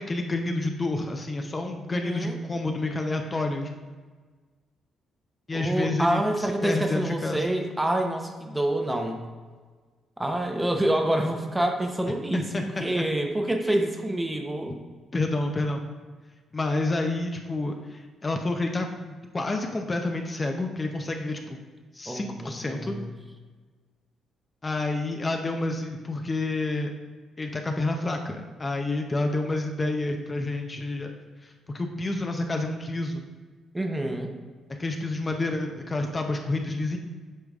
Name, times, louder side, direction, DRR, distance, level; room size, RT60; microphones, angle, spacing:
voice 1, 0.0-3.7 5.5-7.4 12.3-13.0 15.1-15.8 16.5-21.6 21.9-23.0 24.6-26.9 27.4-31.1 31.4-33.2 34.8-37.0, left 2 dB, 25° left, 3 dB, 0.6 m, -29 dB
voice 2, 1.9-2.3 5.5-9.2 10.2-14.8 22.1-23.1 33.7-34.3, right 1 dB, 10° right, 4 dB, 0.7 m, -27 dB
8.2 x 5.1 x 2.4 m, 1.4 s
cardioid pair, 90°, 0 cm